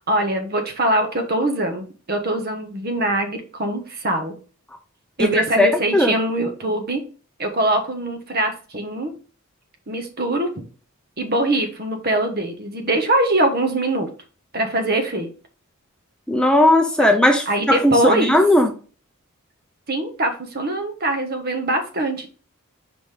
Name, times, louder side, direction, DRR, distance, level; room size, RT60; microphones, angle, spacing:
voice 1, 0.1-4.4 5.2-7.0 7.4-9.1 9.9-10.6 11.2-14.1 14.5-15.3 17.5-18.3 19.9-22.3, right 1 dB, 45° right, 6 dB, 1.2 m, -22 dB
voice 2, 5.2-6.1 16.3-18.7, left 1 dB, 5° left, 3 dB, 0.5 m, -17 dB
5.0 x 4.0 x 4.9 m, 0.37 s
head